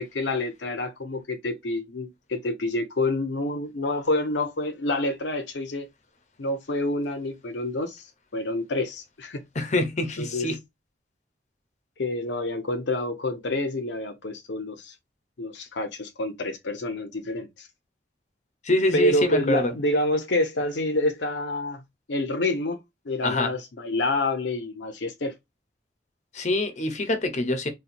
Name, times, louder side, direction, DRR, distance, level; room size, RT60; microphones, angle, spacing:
voice 1, 0.0-5.9 6.4-8.1 8.3-9.4 10.2-10.5 12.0-14.9 15.4-17.7 18.9-21.8 22.1-22.8 23.0-25.3, left 2 dB, 90° left, 0.7 m, -27 dB
voice 2, 9.5-10.6 18.6-19.7 23.2-23.5 26.3-27.7, left 2 dB, 40° left, 0.7 m, -25 dB
4.1 x 2.3 x 2.5 m
head